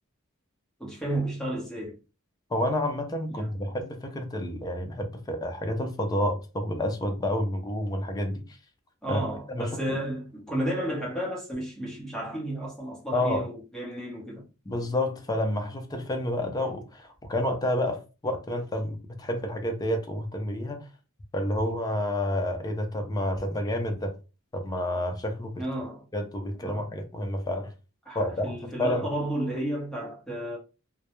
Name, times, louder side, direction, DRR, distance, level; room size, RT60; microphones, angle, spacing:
voice 1, 0.8-2.0 3.3-3.5 9.0-14.5 25.6-26.0 26.6-26.8 28.1-30.6, right 1 dB, 5° left, 0.8 m, -32 dB
voice 2, 2.5-8.4 9.1-9.2 9.5-10.0 13.1-13.5 14.7-20.8 21.3-24.1 24.5-25.5 26.1-27.7 28.1-29.1, left 1 dB, 20° left, 0.4 m, -29 dB
2.3 x 2.0 x 2.9 m
head